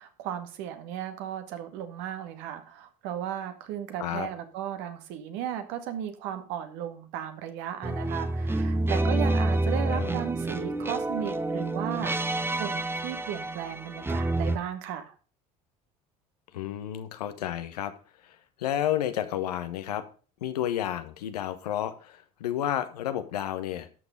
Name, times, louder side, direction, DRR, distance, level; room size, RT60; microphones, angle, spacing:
voice 1, 0.0-15.1, right 10 dB, 70° right, 8 dB, 1.9 m, -35 dB
sound 1, 7.8-14.6, right 2 dB, 10° right, 1.1 m, -28 dB
voice 2, 16.5-17.9 18.2-20.0 20.4-23.9, left 11 dB, 85° left, 10 dB, 1.3 m, -31 dB
12.5 x 6.3 x 5.1 m, 0.38 s
hypercardioid pair, 75°, 20 cm